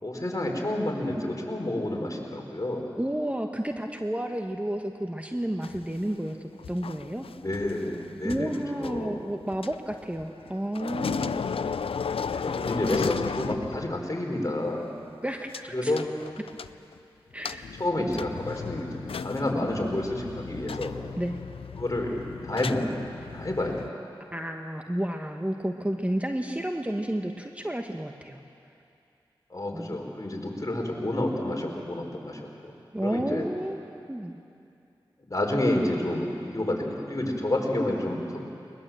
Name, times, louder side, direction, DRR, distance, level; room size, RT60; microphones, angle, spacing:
voice 1, 0.0-2.9 7.3-8.5 8.8-9.2 11.5-11.6 12.3-14.9 15.7-16.1 17.8-20.9 21.8-22.2 22.4-23.0 23.3-23.9 29.5-32.7 33.0-33.5 35.3-38.4, left 1 dB, 35° left, 0 dB, 4.4 m, -29 dB
voice 2, 3.0-6.4 6.7-7.3 8.2-11.5 15.2-16.0 17.3-18.2 21.2-21.4 24.3-28.4 29.7-30.0 32.9-34.4, right 1 dB, 15° right, 4 dB, 1.3 m, -31 dB
sound 1, 5.6-10.5 10.7-14.1 14.4-14.5 15.5-15.6 16.0-17.0 17.4-23.9, left 6 dB, 90° left, 0.4 m, -35 dB
20.5 x 20.5 x 7.8 m, 2.7 s
cardioid pair, 40°, 9 cm